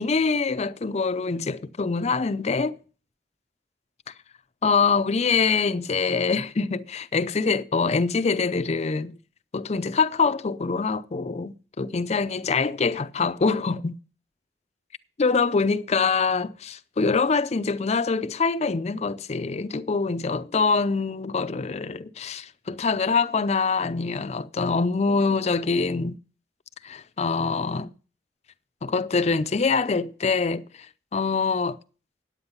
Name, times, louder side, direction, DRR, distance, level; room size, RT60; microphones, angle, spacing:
voice 1, 0.0-2.8 4.6-9.2 9.5-14.0 15.2-26.2 26.8-27.9 28.8-30.9 31.1-31.8, left 4 dB, 40° left, 0.5 m, -24 dB
9.6 x 8.8 x 5.5 m
head